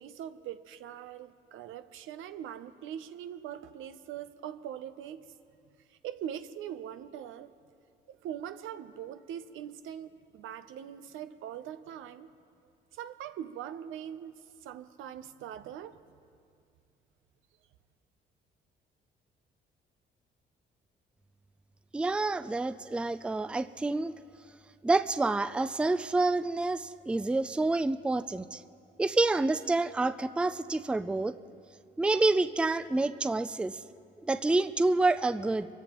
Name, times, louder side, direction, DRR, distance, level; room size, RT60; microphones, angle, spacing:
voice 1, 0.0-5.3 5.9-7.5 8.1-12.3 12.9-14.3 14.6-16.0, right 10 dB, 85° right, 11 dB, 0.6 m, -42 dB
voice 2, 21.9-24.1 24.8-28.6 29.0-31.4 32.0-33.8 34.2-35.7, right 2 dB, 5° right, 13 dB, 0.3 m, -28 dB
23.0 x 15.0 x 3.0 m, 2.4 s
cardioid pair, 90°, 20 cm